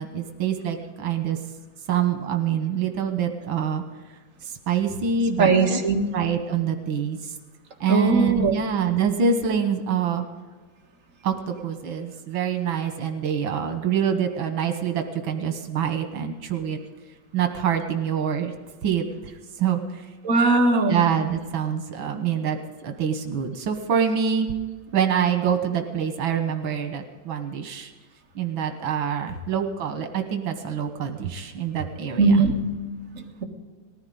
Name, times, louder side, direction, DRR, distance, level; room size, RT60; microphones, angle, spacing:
voice 1, 0.0-1.4 1.9-3.8 4.4-5.8 6.1-7.3 7.8-10.2 11.2-16.8 17.3-18.5 18.8-19.3 19.6-20.0 20.9-24.5 24.9-27.9 28.4-32.4, right 7 dB, 85° right, 5 dB, 2.0 m, -25 dB
voice 2, 5.4-6.1 7.9-8.6 20.2-21.0 32.2-32.6 33.1-33.4, right 3 dB, 40° right, 0 dB, 2.1 m, -19 dB
19.5 x 14.5 x 3.9 m, 1.5 s
omnidirectional pair, 2.1 m